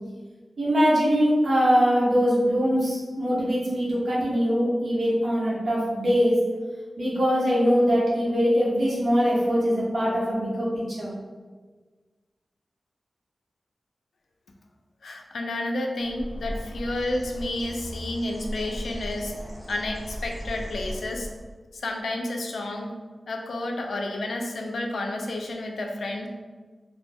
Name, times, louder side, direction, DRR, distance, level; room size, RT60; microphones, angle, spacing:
voice 1, 0.6-6.4 7.0-11.1, equal, 70° right, -7 dB, 0.8 m, -22 dB
voice 2, 15.0-19.4 19.7-21.3 21.7-23.0 23.3-26.3, left 1 dB, 85° left, 2 dB, 0.3 m, -30 dB
Bird, 16.0-21.6, equal, 20° right, 0.7 m, -37 dB
2.1 x 2.1 x 3.2 m, 1.4 s
wide cardioid pair, 115°, 0 cm